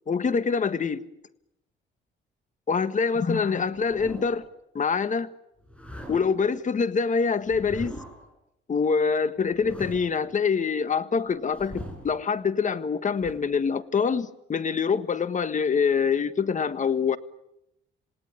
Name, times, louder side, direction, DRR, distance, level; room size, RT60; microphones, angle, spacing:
voice 1, 0.1-1.0 2.7-4.4 4.7-5.3 6.1-8.0 8.7-17.2, left 5 dB, 40° left, 13 dB, 1.6 m, -25 dB
sound 1, 3.6-4.5 5.6-6.5 7.4-8.3 9.3-10.3 11.3-12.2 13.2-13.3, equal, 5° left, 6.4 m, -41 dB
28.0 x 18.0 x 9.6 m, 0.85 s
cardioid pair, 90°, 20 cm